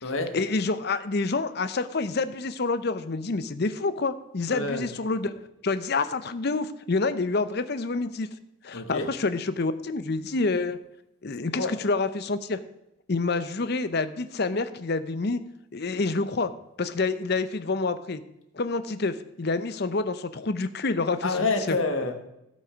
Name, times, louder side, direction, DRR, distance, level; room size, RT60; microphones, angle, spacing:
voice 1, 0.3-8.3 8.6-10.8 11.2-12.6 13.1-15.4 15.7-16.5 16.8-18.2 18.5-21.8, left 3 dB, 50° left, 12 dB, 0.6 m, -28 dB
voice 2, 4.5-4.8 8.7-9.1 11.5-11.7 21.2-22.1, left 3 dB, 70° left, 5 dB, 1.5 m, -27 dB
16.0 x 5.5 x 5.1 m, 0.86 s
head